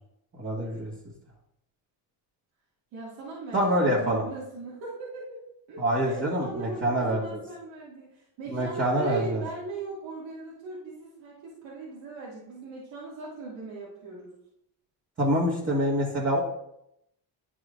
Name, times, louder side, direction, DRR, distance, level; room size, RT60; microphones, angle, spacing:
voice 1, 0.4-0.9 3.5-4.2 5.8-7.2 8.5-9.4 15.2-16.4, right 1 dB, 30° right, -6 dB, 1.8 m, -25 dB
voice 2, 2.9-5.4 5.7-14.3, right 3 dB, 90° right, -7 dB, 2.2 m, -39 dB
9.9 x 6.1 x 2.5 m, 0.79 s
cardioid pair, 105°, 45 cm